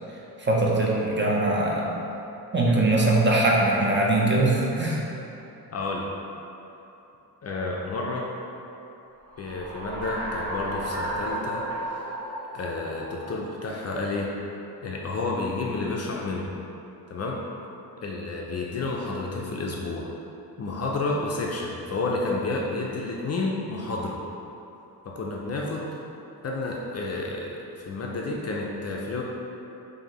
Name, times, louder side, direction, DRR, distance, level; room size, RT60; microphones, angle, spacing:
voice 1, 0.4-2.0 2.5-5.0, right 2 dB, 30° right, -3 dB, 0.5 m, -22 dB
voice 2, 5.7-6.1 7.4-8.3 9.4-11.6 11.9-14.3 14.8-16.5 17.1-17.4 18.0-20.1 20.6-24.2 25.1-25.9 26.4-29.2, left 3 dB, 40° left, -2 dB, 0.4 m, -30 dB
sound 1, 9.2-13.9, right 1 dB, 85° right, 1.3 m, -34 dB
4.7 x 2.6 x 2.9 m, 2.9 s
wide cardioid pair, 125°, 40 cm